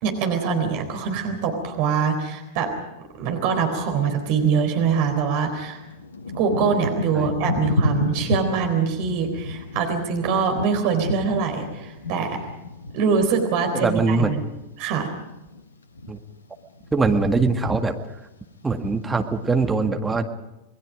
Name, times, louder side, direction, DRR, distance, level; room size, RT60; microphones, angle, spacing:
voice 1, 0.0-2.7 3.2-5.8 6.3-12.4 12.9-14.4 14.8-15.1, right 6 dB, 45° right, 5 dB, 3.9 m, -23 dB
Thunder / Rain, 4.8-4.9 5.5-15.1 15.3-16.2 16.8-17.1 17.4-18.2 18.8-18.9, left 2 dB, 70° left, 1.2 m, -31 dB
voice 2, 13.7-14.3 16.1-16.2 16.9-18.0 18.6-20.2, right 3 dB, 10° right, 4 dB, 1.9 m, -22 dB
27.5 x 20.5 x 5.1 m, 0.96 s
figure-of-eight pair, 90°, 0 cm